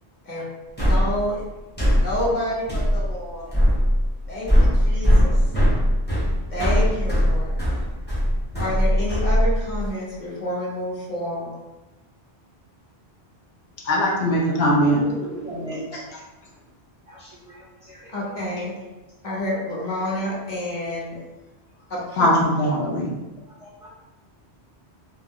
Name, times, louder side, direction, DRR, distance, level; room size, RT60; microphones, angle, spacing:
sound 1, 0.8-9.9, equal, 10° left, 0.7 m, -20 dB
voice 1, 0.9-1.4 2.0-3.5 4.3-5.3 6.5-7.5 8.6-11.5 18.1-18.7 19.2-21.2 21.9-22.3, left 1 dB, 45° left, -6 dB, 0.9 m, -28 dB
voice 2, 13.9-15.0 22.2-23.1, equal, 70° left, -3 dB, 0.9 m, -20 dB
voice 3, 14.8-16.0 17.1-18.1 23.6-23.9, right 1 dB, 40° right, -7 dB, 0.6 m, -37 dB
2.4 x 2.2 x 3.5 m, 1.1 s
omnidirectional pair, 1.1 m